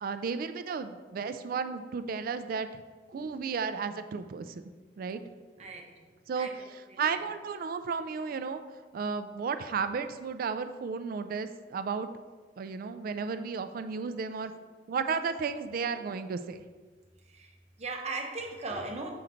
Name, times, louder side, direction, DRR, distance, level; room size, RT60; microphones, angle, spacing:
voice 1, 0.0-2.8 3.1-4.6 5.0-5.2 6.3-6.5 7.0-8.6 8.9-12.1 12.6-14.5 14.9-16.6, right 5 dB, 55° right, 10 dB, 0.3 m, -33 dB
voice 2, 5.6-5.9 6.3-7.2 17.3-19.1, right 3 dB, 40° right, 2 dB, 0.8 m, -39 dB
6.2 x 3.8 x 4.4 m, 1.4 s
head